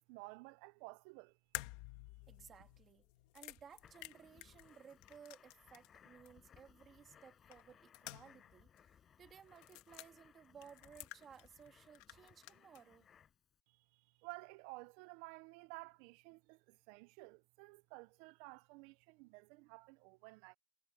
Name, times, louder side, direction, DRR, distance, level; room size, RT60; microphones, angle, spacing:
voice 1, 0.0-1.4 13.7-20.6, right 25 dB, 80° right, 0.4 m, -54 dB
sound 1, 1.5-6.0 6.3-6.4 7.5-8.5 8.8-8.9 9.6-10.1 10.6-11.7 11.9-12.8, left 19 dB, 85° left, 1.7 m, -51 dB
voice 2, 2.3-3.1 3.3-13.1, right 7 dB, 30° right, 2.2 m, -59 dB
Writing, 3.7-13.6, left 8 dB, 30° left, 5.4 m, -66 dB
cardioid pair, 160°, 0 cm